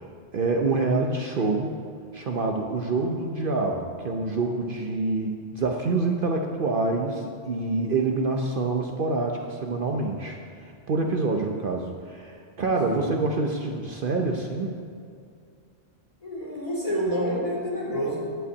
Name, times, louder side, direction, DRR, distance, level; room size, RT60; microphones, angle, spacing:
voice 1, 0.0-1.7 2.1-14.7, right 3 dB, 55° right, 2 dB, 0.9 m, -26 dB
voice 2, 16.2-18.2, equal, 30° left, -6 dB, 3.2 m, -28 dB
11.0 x 5.6 x 8.2 m, 2.3 s
omnidirectional pair, 1.2 m